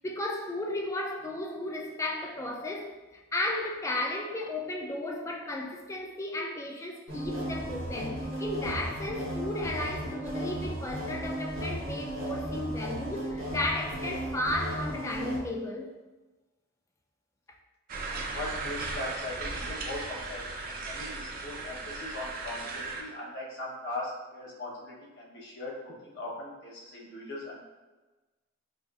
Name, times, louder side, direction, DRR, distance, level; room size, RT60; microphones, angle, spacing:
voice 1, 0.0-3.0 3.3-15.9, left 1 dB, 15° left, 0.3 m, -34 dB
sound 1, 7.1-15.4, right 1 dB, 70° right, 1.1 m, -35 dB
voice 2, 17.9-27.6, left 2 dB, 55° left, 0.9 m, -40 dB
sound 2, 17.9-23.0, right 3 dB, 45° right, 0.5 m, -37 dB
4.9 x 2.5 x 2.4 m
head